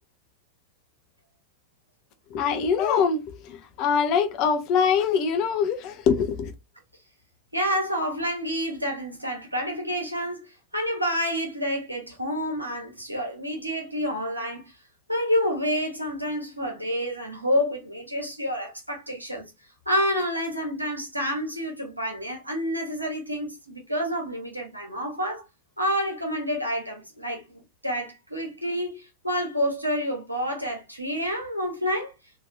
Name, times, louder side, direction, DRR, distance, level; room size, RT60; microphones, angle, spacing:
voice 1, 2.3-6.5, left 6 dB, 40° left, 0.7 m, -23 dB
voice 2, 7.5-10.4 10.7-14.7 15.1-19.4 19.9-25.4 25.8-32.1, equal, 85° right, 1.1 m, -28 dB
3.1 x 2.7 x 2.6 m
figure-of-eight pair, 90°, 0 cm